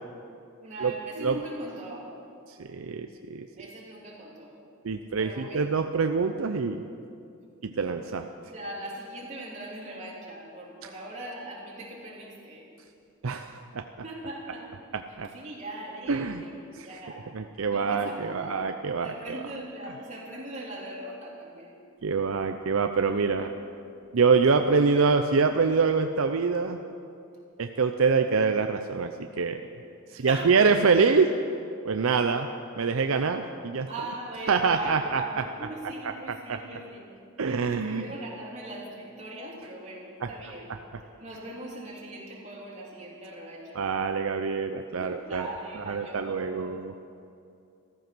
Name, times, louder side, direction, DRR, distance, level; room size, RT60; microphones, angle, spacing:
voice 1, 0.6-2.0 3.6-4.5 5.2-5.7 7.7-7.8 8.5-12.7 14.0-14.7 15.2-17.2 17.7-18.6 19.0-21.7 30.1-30.7 33.9-37.1 37.6-40.7 41.2-43.8 45.0-46.8, right 1 dB, 35° right, -4 dB, 3.4 m, -40 dB
voice 2, 2.6-3.5 4.8-6.8 7.6-8.3 13.2-13.8 14.9-15.3 16.1-16.4 16.8-16.9 17.3-19.4 22.0-23.5 24.1-26.8 27.6-29.1 29.4-29.7 30.1-31.3 31.8-32.5 32.7-33.9 34.5-35.2 36.0-36.6 37.4-38.1 40.2-40.3 43.7-45.5 45.7-46.9, right 5 dB, 75° right, 7 dB, 0.6 m, -25 dB
14.5 x 14.5 x 6.1 m, 2.5 s
head